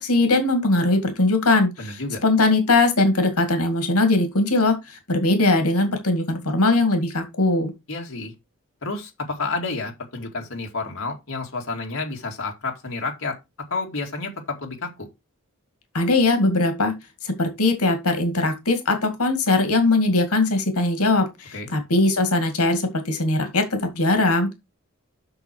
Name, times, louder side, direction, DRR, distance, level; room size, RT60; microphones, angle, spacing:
voice 1, 0.0-7.7 15.9-17.0 17.2-24.6, left 2 dB, 90° left, 2.1 m, -20 dB
voice 2, 1.8-2.2 7.9-8.3 8.8-13.4 13.7-15.1 21.5-21.7, left 3 dB, 65° left, 2.2 m, -30 dB
7.9 x 6.3 x 4.5 m
head